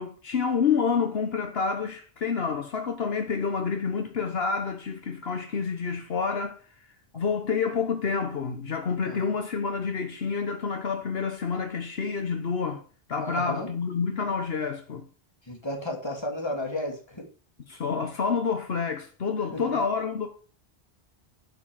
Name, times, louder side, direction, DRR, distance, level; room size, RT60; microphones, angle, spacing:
voice 1, 0.0-6.6 7.1-12.8 13.1-15.0 17.7-20.3, left 5 dB, 65° left, 1.2 m, -28 dB
voice 2, 13.2-13.7 15.4-17.3 19.5-19.8, left 1 dB, 25° left, 2.4 m, -33 dB
10.5 x 5.2 x 7.5 m
omnidirectional pair, 1.1 m